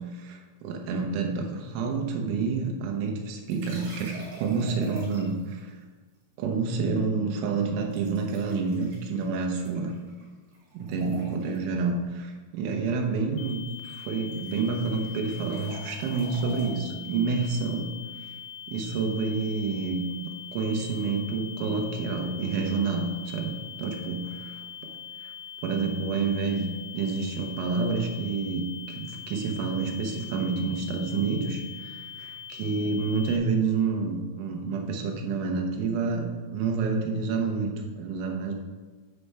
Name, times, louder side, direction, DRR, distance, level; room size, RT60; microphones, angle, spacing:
voice 1, 0.0-5.8 6.4-10.0 10.8-17.9 18.7-23.5 23.8-24.2 25.2-25.3 25.6-26.7 26.9-38.5, right 4 dB, 90° right, 2 dB, 3.3 m, -28 dB
sound 1, 3.5-5.5 7.9-10.3 10.5-11.7 13.5-13.7 14.0-16.7, right 2 dB, 60° right, 3.6 m, -45 dB
sound 2, 13.4-33.4, left 9 dB, 85° left, 2.6 m, -42 dB
9.3 x 5.4 x 3.3 m, 1.3 s
omnidirectional pair, 5.3 m